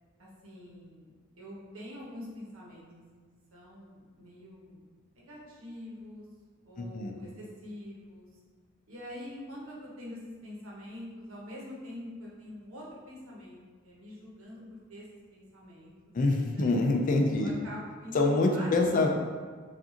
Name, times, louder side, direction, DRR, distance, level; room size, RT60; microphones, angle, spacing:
voice 1, 0.2-3.2 3.5-4.8 5.1-6.3 6.6-8.3 8.9-15.0 15.3-16.1 16.5-16.8 17.3-19.0, left 1 dB, 80° right, -4 dB, 1.1 m, -45 dB
voice 2, 6.8-7.1 16.1-17.5 18.1-19.1, left 2 dB, 40° left, 2 dB, 0.4 m, -25 dB
4.7 x 2.6 x 2.8 m, 1.5 s
head